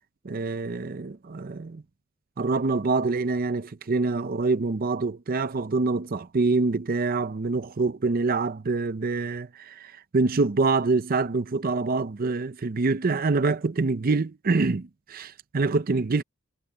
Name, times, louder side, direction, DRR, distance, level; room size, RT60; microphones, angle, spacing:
voice 1, 0.2-1.8 2.4-16.2, right 3 dB, 45° right, 0.6 m, -25 dB
head